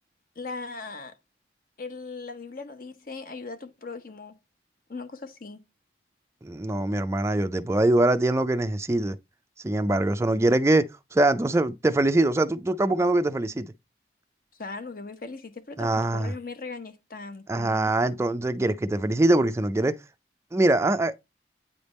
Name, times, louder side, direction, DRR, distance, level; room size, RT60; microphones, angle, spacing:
voice 1, 0.4-1.2 1.8-4.4 4.9-5.6 14.6-17.9, left 3 dB, 50° left, 0.9 m, -39 dB
voice 2, 6.4-9.2 9.6-13.7 15.8-16.3 17.5-20.0 20.5-21.2, right 2 dB, 15° right, 0.4 m, -23 dB
8.7 x 3.4 x 4.1 m
head